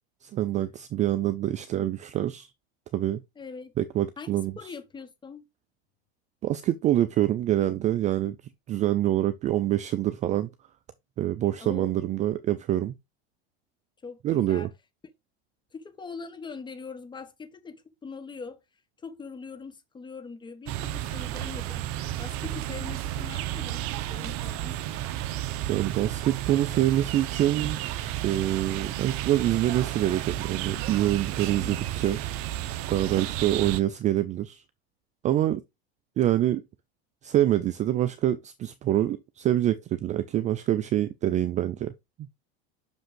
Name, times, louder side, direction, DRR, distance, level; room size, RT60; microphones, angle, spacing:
voice 1, 0.3-2.5 2.9-3.2 3.8-4.5 6.4-8.4 8.7-10.5 11.2-12.9 14.2-14.7 25.7-27.8 28.2-32.2 32.9-34.6 35.2-35.6 36.2-36.6 37.2-41.9, right 13 dB, 25° right, 0.4 m, -25 dB
voice 2, 3.3-3.7 4.2-5.5 11.6-11.9 14.0-14.7 15.7-18.6 19.0-21.9 22.2-24.8 31.6-31.8, left 5 dB, 15° left, 1.0 m, -42 dB
sound 1, 20.7-33.8, right 13 dB, 45° right, 0.8 m, -32 dB
6.1 x 5.3 x 3.8 m
supercardioid pair, 130°, 31 cm